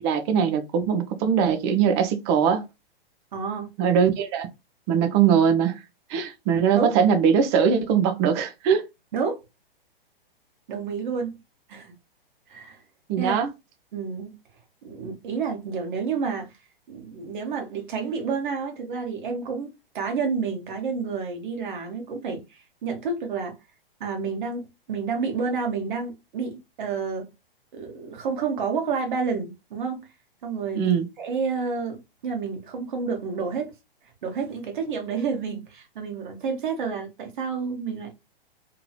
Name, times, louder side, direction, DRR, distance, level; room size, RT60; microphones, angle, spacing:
voice 1, 0.0-2.6 3.8-4.5 4.9-5.8 6.1-8.8 13.1-13.5 30.7-31.1, right 7 dB, 30° right, 0.6 m, -21 dB
voice 2, 3.3-3.7 6.7-6.9 9.1-9.4 10.7-11.4 11.7-11.9 12.5-12.8 13.2-13.4 13.9-14.4 14.8-16.5 16.9-23.6 24.0-27.3 27.7-30.1 30.4-33.7 34.2-38.1, right 5 dB, 55° right, 1.0 m, -30 dB
2.9 x 2.8 x 2.2 m
figure-of-eight pair, 115°, 29 cm